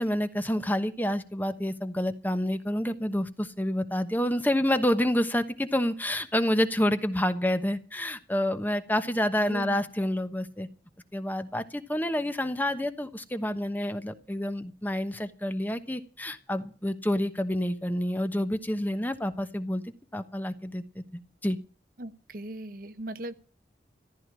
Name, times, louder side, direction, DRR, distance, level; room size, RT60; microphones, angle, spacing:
voice 1, 0.0-10.7 11.1-19.8 20.1-21.0 21.4-21.6, left 1 dB, 10° left, 10 dB, 1.1 m, -28 dB
voice 2, 9.4-9.8 22.0-23.3, right 1 dB, 55° right, 12 dB, 1.0 m, -38 dB
14.5 x 12.0 x 6.2 m, 0.37 s
head